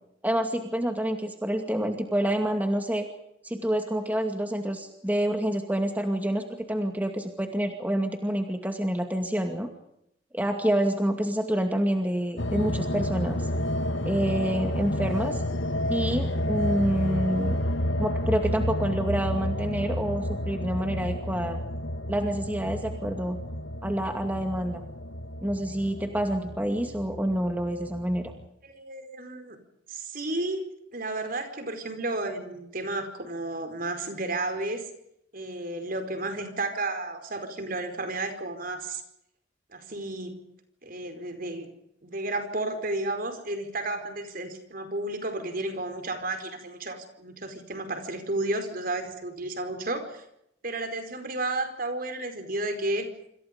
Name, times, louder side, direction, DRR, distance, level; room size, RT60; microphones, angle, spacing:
voice 1, 0.2-3.1 3.4-9.7 10.3-13.4 14.1-15.4 15.9-17.6 18.0-21.6 22.1-23.4 23.8-24.8 25.4-28.3, right 1 dB, 10° right, 4 dB, 2.3 m, -27 dB
sound 1, 12.4-28.4, left 1 dB, 70° left, 1.9 m, -30 dB
voice 2, 28.6-29.6 29.9-30.6 30.9-34.8 35.3-39.0 39.7-40.4 40.8-41.7 42.0-50.2 50.6-53.1, right 2 dB, 45° right, 8 dB, 4.9 m, -32 dB
27.5 x 27.0 x 5.3 m, 0.77 s
head